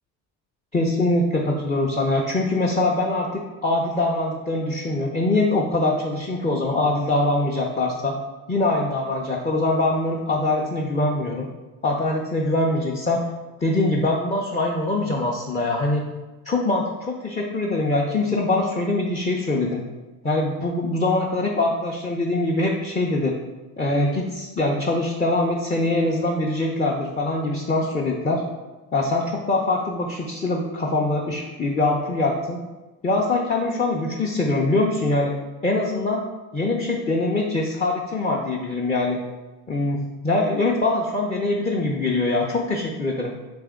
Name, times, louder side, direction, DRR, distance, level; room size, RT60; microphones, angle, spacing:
voice 1, 0.7-8.1 8.5-11.5 11.8-13.3 13.6-16.0 16.5-19.8 20.2-23.4 23.8-28.4 28.9-32.6 33.0-35.3 35.6-36.2 36.5-39.2 39.7-43.3, left 2 dB, 15° left, -2 dB, 0.5 m, -23 dB
3.4 x 3.2 x 3.6 m, 1.2 s
hypercardioid pair, 55°, 50 cm